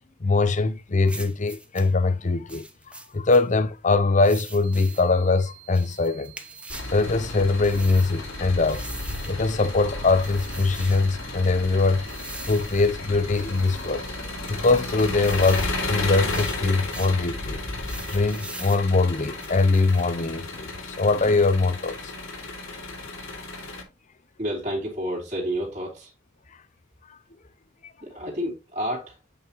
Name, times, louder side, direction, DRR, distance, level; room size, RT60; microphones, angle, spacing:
voice 1, 0.2-2.6 3.1-6.3 6.9-8.9 9.3-12.0 12.5-14.0 14.5-17.6 18.1-20.7 21.0-22.1, left 3 dB, 35° left, 0.6 m, -22 dB
sound 1, 1.1-1.9 2.5-3.4 4.2-5.1 5.7-6.9 7.6-8.1 8.7-9.4 10.2-11.1 12.1-12.9 13.3-13.9 14.5-15.8 16.1-17.2 17.8-18.8 19.4-20.0, right 2 dB, 5° right, 0.8 m, -42 dB
sound 2, 4.6-16.1, right 24 dB, 60° right, 2.0 m, -50 dB
Engine, 6.7-23.8, left 2 dB, 75° left, 2.4 m, -33 dB
voice 2, 24.4-26.1 28.0-29.2, equal, 35° right, 2.8 m, -30 dB
8.6 x 5.6 x 2.9 m
head